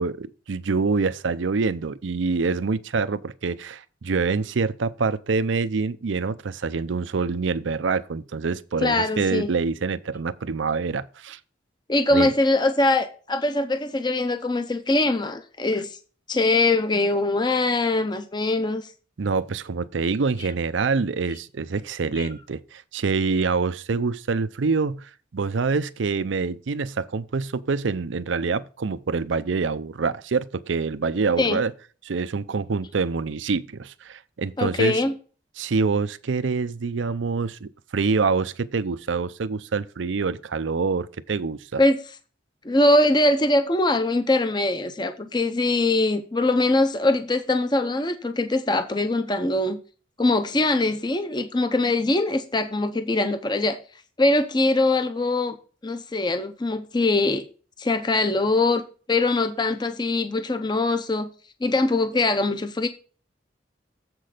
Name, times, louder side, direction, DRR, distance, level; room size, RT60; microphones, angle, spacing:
voice 1, 0.0-11.4 12.1-12.3 19.2-31.7 32.0-35.0 35.6-41.8, right 4 dB, 80° right, 0.5 m, -26 dB
voice 2, 8.8-9.5 11.9-16.0 16.3-18.9 22.2-22.3 31.4-31.6 34.6-35.1 41.8-42.0 42.6-49.8 50.2-53.8 54.2-55.6 55.8-57.4 57.8-58.8 59.1-61.3 61.6-62.9, left 2 dB, 25° left, 0.6 m, -22 dB
7.6 x 6.1 x 4.9 m
head